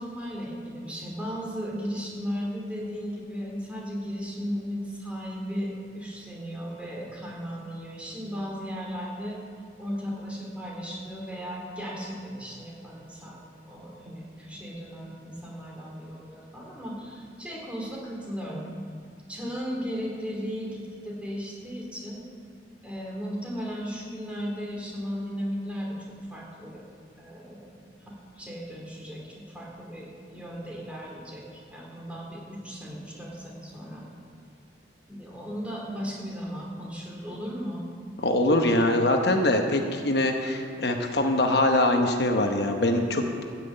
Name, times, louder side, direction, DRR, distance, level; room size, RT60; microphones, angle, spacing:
voice 1, 0.0-9.4 9.8-13.4 13.6-18.7 19.3-22.2 22.8-26.8 27.2-27.8 28.0-34.0 35.1-37.8, equal, 5° right, -3 dB, 2.8 m, -36 dB
voice 2, 38.2-43.2, left 1 dB, 65° left, 4 dB, 1.0 m, -23 dB
14.0 x 6.1 x 8.8 m, 2.4 s
head